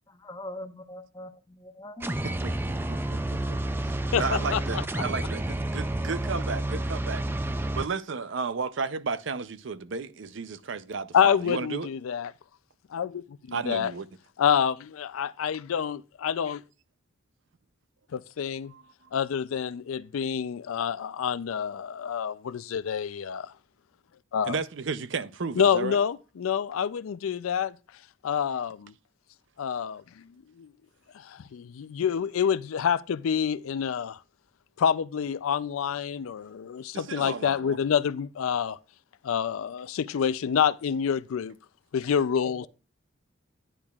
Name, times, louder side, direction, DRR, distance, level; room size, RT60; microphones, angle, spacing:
voice 1, 0.1-2.2 2.4-2.6, left 1 dB, 20° left, 1.0 m, -42 dB
sound 1, 2.0-7.9, right 1 dB, 10° right, 0.3 m, -30 dB
voice 2, 2.2-3.2 3.5-3.6 4.1-7.2 7.5-11.9 13.5-14.1 18.2-18.8 19.9-20.1 24.4-26.0 36.9-37.8, right 4 dB, 65° right, 0.5 m, -33 dB
voice 3, 4.1-4.6 11.1-12.3 12.9-13.9 14.4-16.6 18.1-18.7 19.1-23.5 24.3-24.6 25.6-27.7 28.2-28.9 29.6-30.3 30.6-30.7 31.1-34.2 34.8-38.8 39.2-41.6 41.9-42.7, left 7 dB, 85° left, 0.4 m, -27 dB
10.5 x 10.0 x 2.4 m
head